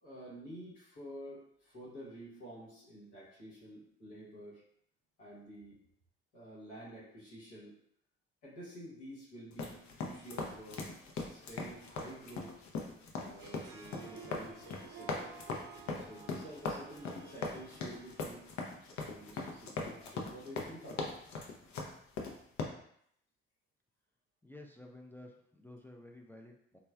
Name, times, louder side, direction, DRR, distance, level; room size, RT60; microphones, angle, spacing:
voice 1, 0.0-4.6 5.2-5.8 6.3-7.7 8.4-12.5 13.2-15.4 16.0-18.5 19.0-21.1, right 1 dB, 80° left, -8 dB, 1.1 m, -50 dB
sound 1, 9.5-22.6, left 4 dB, 65° left, 0.6 m, -40 dB
Harp, 13.4-18.7, right 6 dB, 65° right, 0.5 m, -53 dB
voice 2, 24.4-26.8, left 1 dB, 5° left, 1 dB, 0.3 m, -52 dB
3.1 x 2.2 x 2.3 m, 0.69 s
hypercardioid pair, 50°, 31 cm